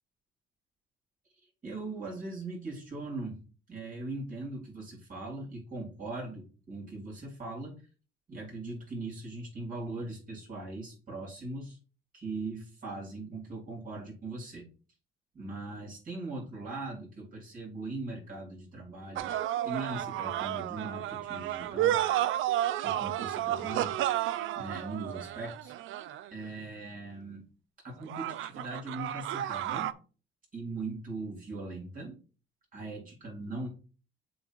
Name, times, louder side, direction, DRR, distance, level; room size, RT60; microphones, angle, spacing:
voice 1, 1.6-3.4 3.7-7.7 8.3-11.8 12.1-14.7 15.3-19.3 19.6-22.0 22.8-24.2 24.5-25.7 26.3-27.4 27.8-29.9 30.5-32.2 32.7-33.7, right 2 dB, 45° right, -2 dB, 4.5 m, -40 dB
sound 1, 19.2-26.4 28.1-29.9, right 12 dB, 85° right, 0.6 m, -32 dB
7.6 x 3.2 x 6.2 m, 0.36 s
cardioid pair, 90°, 20 cm